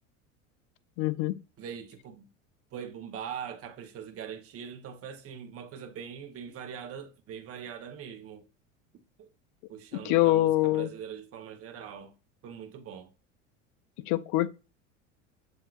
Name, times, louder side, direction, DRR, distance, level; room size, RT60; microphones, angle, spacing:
voice 1, 1.0-1.4 10.0-10.9 14.1-14.5, left 16 dB, 55° left, 0.5 m, -24 dB
voice 2, 1.6-2.3 2.7-8.5 9.2-9.3 9.7-12.1 12.4-13.1, right 8 dB, 35° right, 0.9 m, -42 dB
7.4 x 2.8 x 2.4 m
hypercardioid pair, 95°, 38 cm